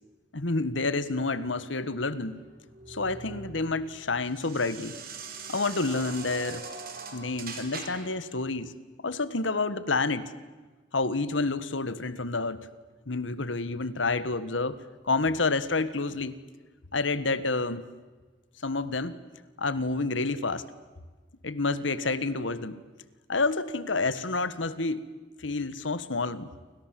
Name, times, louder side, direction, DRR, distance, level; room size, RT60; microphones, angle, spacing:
voice 1, 0.3-2.3 2.9-4.9 5.5-6.6 7.1-8.7 9.0-10.2 10.9-12.6 13.1-14.8 15.0-16.3 16.9-17.8 18.6-19.2 19.6-20.6 21.4-22.8 23.3-25.0 25.4-26.5, left 3 dB, 85° left, 15 dB, 1.5 m, -29 dB
sound 1, 2.3-8.2, right 4 dB, 50° right, 4.4 m, -42 dB
29.5 x 25.0 x 7.7 m, 1.3 s
head